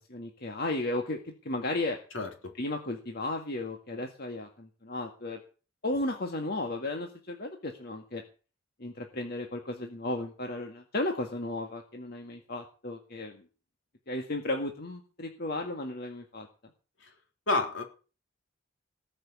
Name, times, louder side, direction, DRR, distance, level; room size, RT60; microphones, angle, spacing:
voice 1, 0.1-2.0 2.6-5.4 5.8-8.2 8.8-13.4 14.1-16.5, left 2 dB, 50° left, 3 dB, 1.9 m, -34 dB
voice 2, 2.1-2.5 17.0-17.1 17.5-17.8, left 2 dB, 70° left, 3 dB, 3.6 m, -30 dB
19.0 x 6.6 x 8.3 m, 0.36 s
head